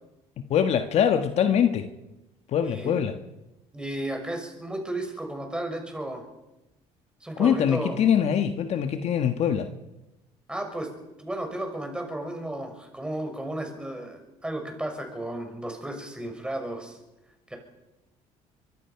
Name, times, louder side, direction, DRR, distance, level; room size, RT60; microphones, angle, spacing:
voice 1, 0.5-1.9 2.5-3.1 7.4-9.7, left 8 dB, 55° left, 8 dB, 1.5 m, -23 dB
voice 2, 2.6-2.9 3.7-6.2 7.2-8.0 10.5-10.9 11.2-17.0 17.5-17.6, right 1 dB, 5° right, 4 dB, 6.0 m, -33 dB
24.0 x 24.0 x 5.9 m, 0.98 s
cardioid pair, 110°, 13 cm